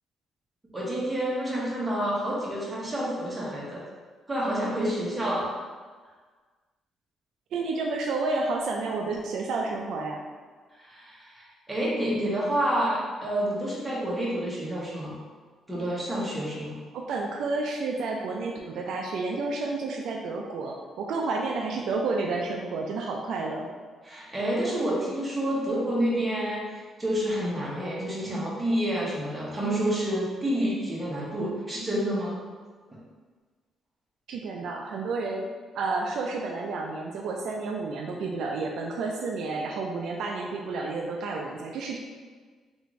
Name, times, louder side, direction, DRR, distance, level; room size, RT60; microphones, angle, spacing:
voice 1, 0.7-3.8 4.3-5.5 10.7-15.1 15.7-16.7 24.0-32.4 32.9-33.0, right 1 dB, 15° right, -6 dB, 1.1 m, -29 dB
voice 2, 7.5-10.2 16.9-23.7 34.3-35.5 35.7-42.0, right 3 dB, 75° right, 1 dB, 0.3 m, -30 dB
3.2 x 2.5 x 3.1 m, 1.5 s
cardioid pair, 90°, 0 cm